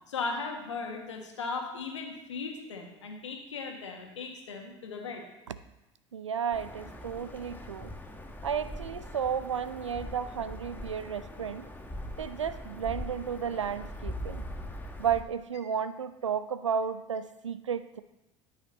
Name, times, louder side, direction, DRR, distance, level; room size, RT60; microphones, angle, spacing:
voice 1, 0.1-5.2, left 4 dB, 85° left, 2 dB, 1.6 m, -37 dB
voice 2, 6.1-7.9 8.4-11.7 12.2-14.4 15.0-18.0, right 7 dB, 90° right, 14 dB, 0.5 m, -33 dB
sound 1, 6.5-15.2, left 1 dB, 10° left, 1.4 m, -41 dB
13.5 x 6.2 x 4.0 m, 0.94 s
hypercardioid pair, 70°, 15 cm